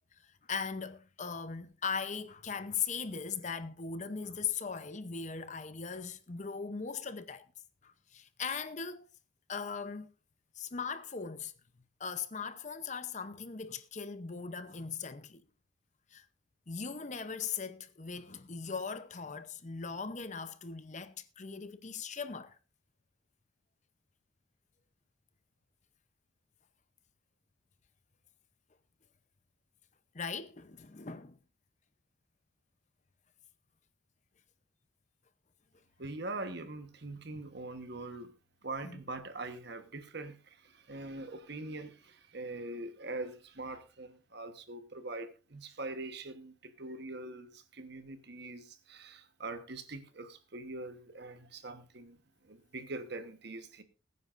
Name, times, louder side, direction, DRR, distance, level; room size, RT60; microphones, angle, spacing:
voice 1, 0.5-7.5 7.8-9.1 9.5-10.1 10.6-11.5 12.0-15.4 16.1-16.2 16.7-22.6 30.1-31.4 38.8-39.0, left 6 dB, 35° left, 0.7 m, -39 dB
voice 2, 36.0-38.3 38.6-52.2 52.4-53.8, right 2 dB, 55° right, 1.2 m, -43 dB
21.0 x 9.5 x 2.6 m
head